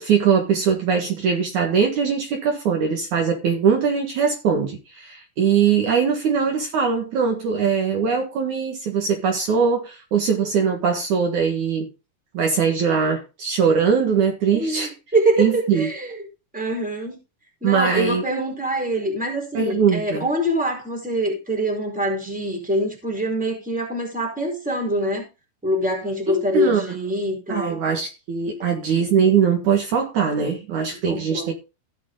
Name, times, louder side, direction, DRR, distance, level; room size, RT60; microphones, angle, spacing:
voice 1, 0.0-11.9 12.3-14.9 15.4-15.9 17.6-18.2 19.5-20.2 26.3-26.8 27.5-31.5, right 6 dB, 60° right, 2.9 m, -21 dB
voice 2, 14.5-16.2 16.5-17.2 17.6-25.3 25.6-27.8 31.1-31.5, right 1 dB, ahead, 3.9 m, -24 dB
16.5 x 6.4 x 3.8 m
omnidirectional pair, 4.2 m